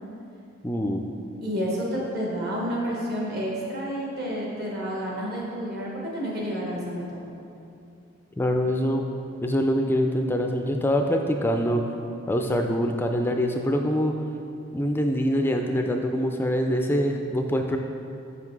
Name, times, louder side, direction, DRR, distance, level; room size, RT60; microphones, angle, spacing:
voice 1, 0.6-1.1 8.4-9.0 9.4-11.8 12.3-14.2 14.7-17.8, equal, 10° left, 4 dB, 0.3 m, -24 dB
voice 2, 1.4-7.2, equal, 45° right, -4 dB, 1.4 m, -30 dB
5.8 x 5.6 x 4.6 m, 2.6 s
head